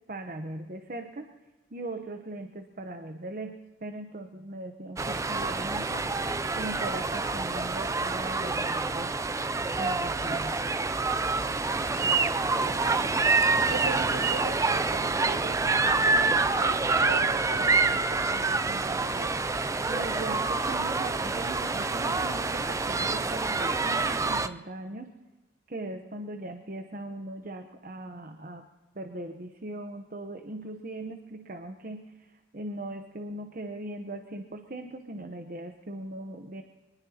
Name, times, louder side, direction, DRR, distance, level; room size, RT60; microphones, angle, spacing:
voice 1, 0.1-1.4 1.7-6.2 6.6-9.2 9.8-10.6 19.9-25.1 25.7-28.7 28.9-36.6, right 1 dB, 45° right, 0.9 m, -39 dB
sound 1, 5.0-24.5, right 3 dB, 15° right, 0.4 m, -27 dB
sound 2, 11.4-16.6, equal, 5° left, 4.6 m, -53 dB
voice 2, 11.9-13.1 13.4-19.5, right 4 dB, 70° right, 0.6 m, -41 dB
24.0 x 20.0 x 2.9 m
head